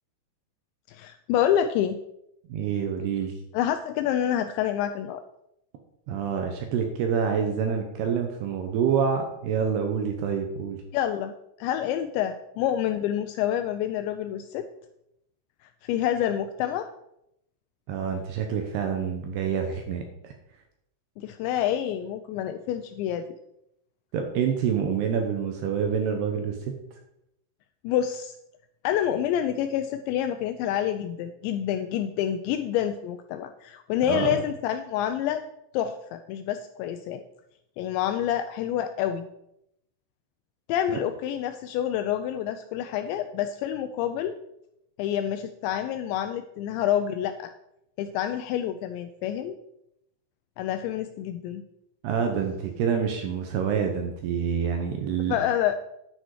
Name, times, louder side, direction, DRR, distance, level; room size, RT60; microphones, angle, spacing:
voice 1, 0.9-2.0 3.5-5.2 10.9-11.3 11.6-14.7 15.8-16.9 21.2-23.3 27.8-28.3 28.8-35.4 35.7-37.2 37.8-39.3 40.7-44.4 45.0-47.5 48.0-49.6 50.6-51.6 55.3-55.8, left 10 dB, 85° left, 8 dB, 2.6 m, -27 dB
voice 2, 2.5-3.3 6.1-10.8 17.9-20.3 24.1-26.7 34.1-34.4 52.0-55.4, right 7 dB, 75° right, 4 dB, 2.6 m, -27 dB
10.0 x 8.9 x 4.8 m, 0.80 s
omnidirectional pair, 5.6 m